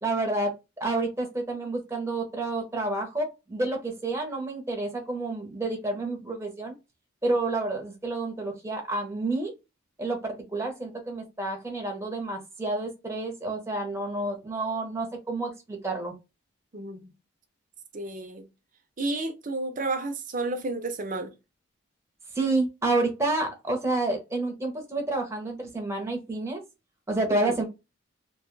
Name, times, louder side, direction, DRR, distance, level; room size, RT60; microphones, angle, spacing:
voice 1, 0.0-6.7 7.2-9.5 10.0-16.1 22.3-26.6 27.1-27.6, right 2 dB, 15° right, 0.9 m, -29 dB
voice 2, 16.7-17.1 17.9-18.5 19.0-21.3 27.3-27.6, right 2 dB, 40° right, 0.7 m, -31 dB
2.9 x 2.3 x 3.1 m
head